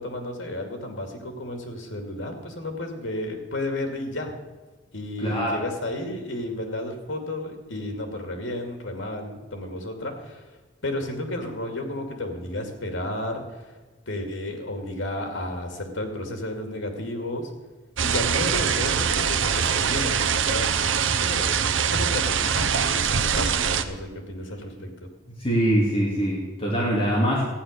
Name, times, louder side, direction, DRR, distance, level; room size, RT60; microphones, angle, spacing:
voice 1, 0.0-4.3 4.9-10.4 10.8-13.6 14.1-17.5 18.0-21.5 21.8-25.1, left 1 dB, 90° left, 4 dB, 2.4 m, -32 dB
voice 2, 5.2-5.6 25.4-27.4, right 1 dB, 30° left, -4 dB, 2.6 m, -23 dB
sound 1, 18.0-23.8, right 7 dB, 80° right, 0.8 m, -23 dB
14.5 x 9.5 x 6.6 m, 1.2 s
head